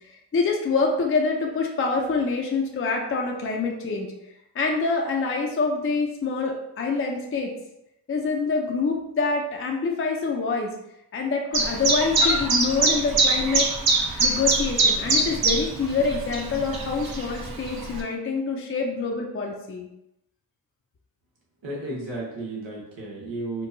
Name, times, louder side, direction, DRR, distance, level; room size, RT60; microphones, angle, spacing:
voice 1, 0.3-4.1 4.5-7.5 8.1-10.7 11.1-13.7 14.2-19.9, left 4 dB, 30° left, 1 dB, 0.5 m, -26 dB
Chirp tweet, 11.5-18.0, right 3 dB, 55° right, 0.8 m, -23 dB
voice 2, 21.6-23.7, right 2 dB, 90° right, -4 dB, 1.2 m, -33 dB
4.4 x 2.2 x 2.6 m, 0.85 s
cardioid pair, 65°, 43 cm